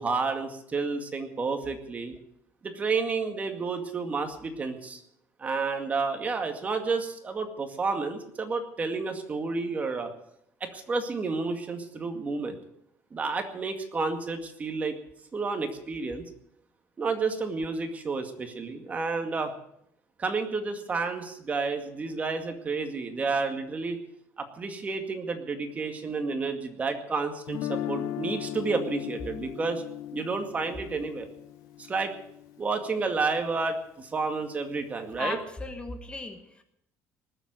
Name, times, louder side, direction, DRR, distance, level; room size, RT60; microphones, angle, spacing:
voice 1, 0.0-2.1 2.6-5.0 5.4-10.1 10.6-12.6 13.1-15.0 15.3-16.3 17.0-19.5 20.2-24.0 24.4-29.8 30.1-31.3 31.8-32.1 32.6-35.4, right 4 dB, 25° right, 6 dB, 2.1 m, -30 dB
Guitar, 27.5-33.5, left 12 dB, 80° left, 1.0 m, -37 dB
voice 2, 35.2-36.6, left 2 dB, 15° left, 7 dB, 1.3 m, -36 dB
19.5 x 7.8 x 9.4 m, 0.73 s
cardioid pair, 140°, 6 cm